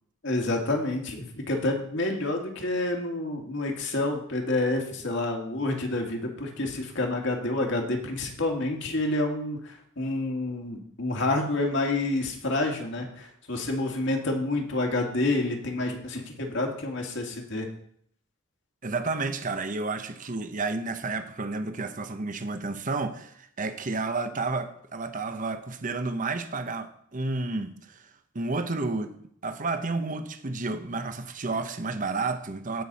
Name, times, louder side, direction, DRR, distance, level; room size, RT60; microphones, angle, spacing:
voice 1, 0.2-17.7, left 2 dB, 65° left, 2.1 m, -28 dB
voice 2, 18.8-28.1 28.3-29.1 29.4-32.8, right 3 dB, 40° right, 0.9 m, -31 dB
17.0 x 6.2 x 4.2 m
head